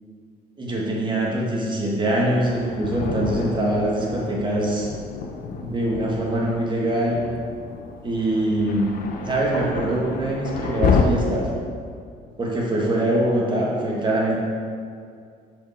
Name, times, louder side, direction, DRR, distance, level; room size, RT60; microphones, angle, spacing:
voice 1, 0.6-4.9 5.5-7.2 8.0-11.5 12.4-14.3, right 1 dB, 25° right, -3 dB, 1.7 m, -23 dB
Thunder, 2.4-11.0, left 6 dB, 55° left, 0.7 m, -29 dB
6.7 x 5.2 x 4.2 m, 2.2 s
cardioid pair, 110°, 17 cm